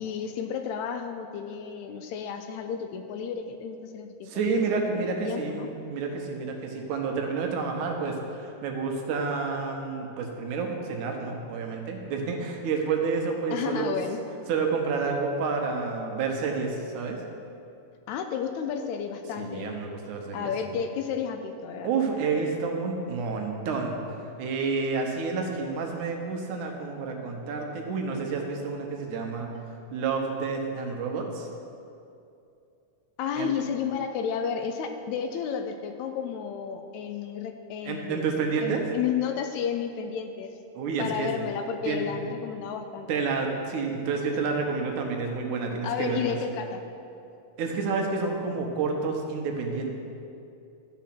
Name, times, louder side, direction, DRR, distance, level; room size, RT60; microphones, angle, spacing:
voice 1, 0.0-5.7 13.5-14.2 18.1-19.7 20.3-21.9 33.2-40.5 41.0-43.1 45.8-46.8, left 7 dB, 80° left, 6 dB, 1.8 m, -32 dB
voice 2, 4.3-13.9 14.5-17.2 19.4-20.5 21.8-24.0 24.4-29.5 29.9-31.5 33.4-33.5 37.9-38.8 40.8-41.3 41.9-42.3 43.1-46.4 47.6-49.9, right 4 dB, 85° right, 2 dB, 2.5 m, -29 dB
13.0 x 4.8 x 5.9 m, 2.6 s
omnidirectional pair, 3.5 m